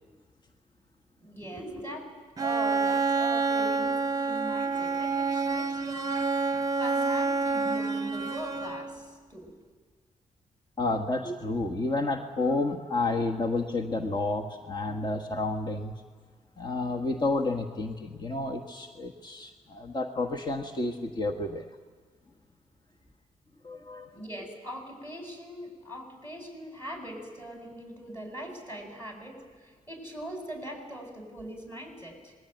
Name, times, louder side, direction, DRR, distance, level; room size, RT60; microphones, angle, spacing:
voice 1, 1.2-2.1 2.4-6.3 6.8-9.5 24.1-32.3, right 1 dB, 15° left, 3 dB, 8.0 m, -41 dB
Bowed string instrument, 2.4-9.1, right 4 dB, 30° right, 0.9 m, -28 dB
voice 2, 10.8-15.9 16.6-21.7 23.6-24.1, left 2 dB, 35° left, 3 dB, 1.6 m, -30 dB
26.5 x 21.0 x 9.3 m, 1.5 s
cardioid pair, 100°, 14 cm